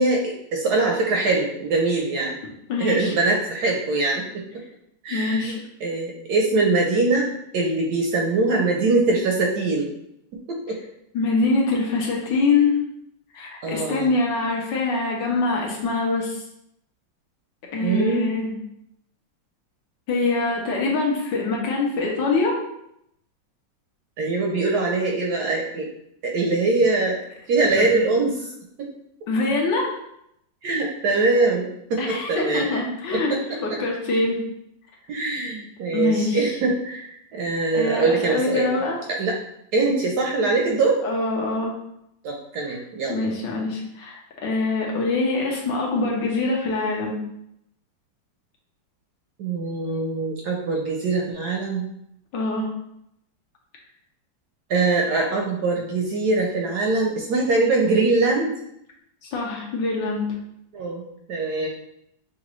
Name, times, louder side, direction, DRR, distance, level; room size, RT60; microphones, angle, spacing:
voice 1, 0.0-2.4 2.8-4.6 5.0-9.9 10.5-10.8 13.6-14.1 17.8-18.3 24.2-25.9 26.2-27.2 27.5-28.5 28.8-28.9 30.6-32.7 33.1-33.4 35.1-38.7 39.1-39.4 39.7-41.0 42.2-43.1 49.4-51.9 54.7-58.5 60.7-61.0 61.3-61.7, right 3 dB, 70° right, 0 dB, 1.0 m, -23 dB
voice 2, 2.7-3.1 5.1-5.6 11.1-12.8 13.3-16.4 17.7-18.6 20.1-22.6 27.7-27.9 29.3-29.9 32.0-33.3 33.6-34.4 35.9-36.4 37.7-39.0 41.0-41.8 42.7-42.8 43.1-44.2 44.4-47.2 52.3-52.7 59.2-60.3, left 3 dB, 70° left, -1 dB, 1.5 m, -24 dB
5.8 x 2.5 x 3.0 m, 0.76 s
omnidirectional pair, 2.1 m